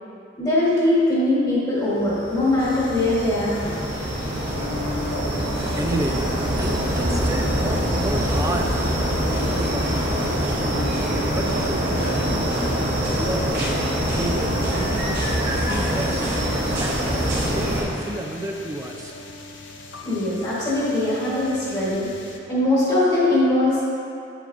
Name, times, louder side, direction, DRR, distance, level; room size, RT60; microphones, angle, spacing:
voice 1, 0.4-3.8 20.0-22.1 22.5-23.8, left 1 dB, 20° left, -9 dB, 1.4 m, -21 dB
sound 1, 1.9-17.8, equal, 50° right, 1.5 m, -24 dB
sound 2, 2.6-22.4, left 2 dB, 70° left, 0.6 m, -39 dB
voice 2, 5.8-6.2 6.6-8.8 9.2-10.6 11.3-12.7 13.1-13.5 14.1-16.3 16.8-19.1, right 1 dB, 15° right, 1 dB, 0.5 m, -31 dB
8.1 x 7.4 x 2.6 m, 2.5 s
head